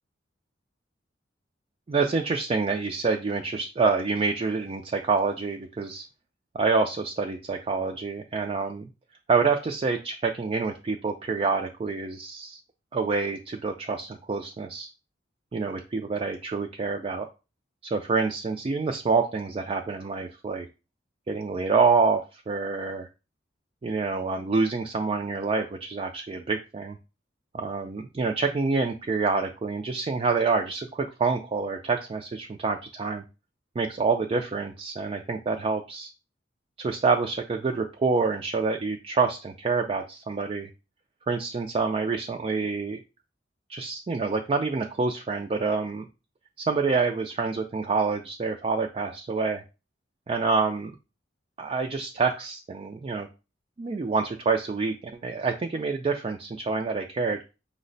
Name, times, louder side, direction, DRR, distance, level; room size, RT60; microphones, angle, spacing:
voice 1, 1.9-6.1 6.5-8.9 9.3-12.6 12.9-14.9 15.5-17.3 17.9-20.7 21.3-23.1 23.8-27.0 27.5-33.2 33.8-36.1 36.8-40.7 41.3-43.0 43.7-46.1 46.6-49.6 50.3-50.9 51.6-53.3 53.8-57.4, right 4 dB, 30° right, 3 dB, 0.4 m, -27 dB
5.5 x 2.1 x 3.9 m, 0.30 s
head